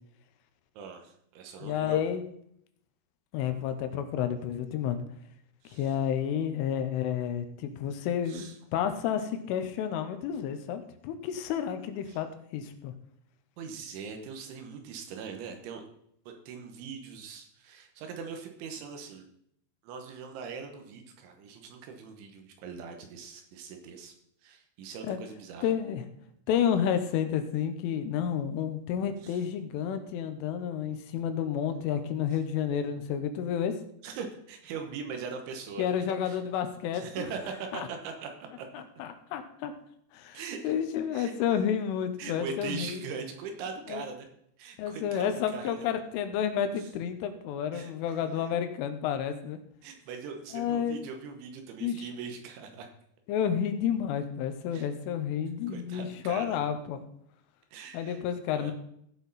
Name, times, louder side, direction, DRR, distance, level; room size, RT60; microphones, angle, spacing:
voice 1, 0.8-2.0 5.6-5.9 8.3-8.6 12.1-12.2 13.6-15.8 16.3-19.3 19.8-24.1 24.4-25.8 29.2-29.4 34.0-35.9 36.2-36.4 36.9-38.7 40.3-40.7 41.1-41.3 42.2-44.3 44.6-45.8 46.8-46.9 47.7-48.2 49.8-52.9 54.7-54.9 55.7-56.6 57.7-58.2 58.5-58.7, right 5 dB, 75° right, 4 dB, 3.4 m, -41 dB
voice 2, 1.6-2.2 3.3-5.0 5.7-12.9 25.0-25.2 25.6-26.0 26.5-33.7 35.8-37.3 37.7-37.9 38.7-39.7 40.1-43.0 43.9-44.0 44.8-49.6 50.5-51.0 51.8-52.0 53.3-57.0 57.9-58.7, left 8 dB, 80° left, 8 dB, 3.3 m, -30 dB
16.5 x 6.3 x 4.1 m, 0.70 s
omnidirectional pair, 5.8 m